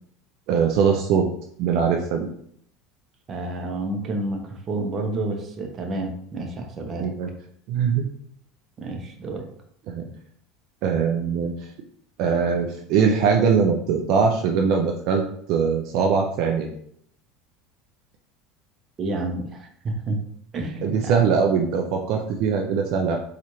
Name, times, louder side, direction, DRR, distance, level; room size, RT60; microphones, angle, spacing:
voice 1, 0.5-1.3 1.6-2.3 7.0-7.3 7.7-8.1 9.9-10.1 10.8-11.7 12.2-16.7 20.8-23.2, right 6 dB, 60° right, 2 dB, 0.4 m, -21 dB
voice 2, 3.3-7.1 8.8-9.5 19.0-20.2 20.5-21.1, right 2 dB, 35° right, 3 dB, 0.8 m, -29 dB
4.2 x 2.4 x 3.0 m, 0.65 s
supercardioid pair, 105°, 0 cm